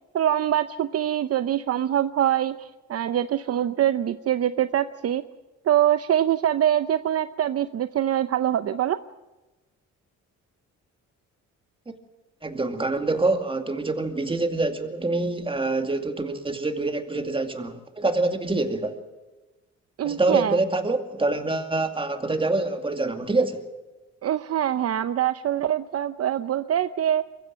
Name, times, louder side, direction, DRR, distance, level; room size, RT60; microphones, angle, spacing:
voice 1, 0.1-5.2 5.7-9.0 20.0-20.6 24.2-27.2, right 11 dB, 55° right, 12 dB, 0.7 m, -24 dB
voice 2, 12.4-19.0 20.0-23.6, right 2 dB, 15° right, 7 dB, 2.4 m, -25 dB
23.0 x 15.5 x 9.0 m, 1.1 s
cardioid pair, 90°, 30 cm